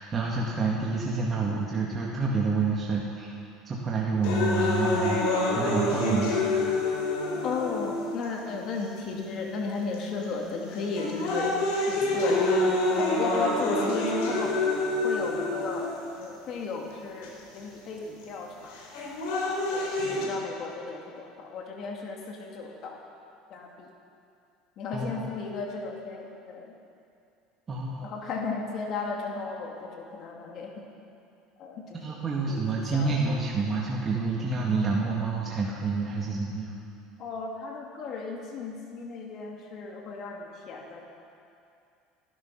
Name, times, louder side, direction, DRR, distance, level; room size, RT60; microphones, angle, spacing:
voice 1, 0.0-3.4 3.7-6.9 24.9-25.2 27.7-28.3 32.0-36.7, right 4 dB, 25° right, -3 dB, 1.8 m, -28 dB
sound 1, 4.2-8.3 9.0-9.1 9.9-10.2 10.7-16.2 17.2-17.3 18.7-20.2, left 2 dB, 75° left, 4.2 m, -27 dB
voice 2, 7.4-12.7 13.0-14.5 15.0-15.9 16.2-18.8 19.7-23.0 23.5-23.9 24.8-26.7 28.0-30.8 31.6-33.3 37.2-41.0, left 4 dB, 50° left, 0 dB, 2.4 m, -35 dB
18.5 x 11.5 x 5.9 m, 2.5 s
supercardioid pair, 125°, 0 cm